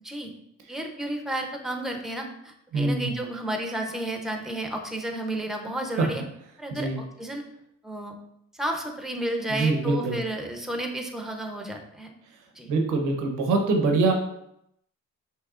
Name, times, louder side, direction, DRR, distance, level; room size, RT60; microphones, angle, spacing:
voice 1, 0.7-6.2 6.6-6.9 7.2-7.4 7.8-8.2 8.6-12.1 12.5-12.7, right 1 dB, ahead, 3 dB, 0.7 m, -32 dB
voice 2, 2.7-3.1 6.0-6.1 6.7-7.0 9.5-10.2 12.7-14.1, right 3 dB, 85° right, 3 dB, 0.9 m, -24 dB
5.9 x 3.3 x 2.5 m, 0.76 s
cardioid pair, 90°, 30 cm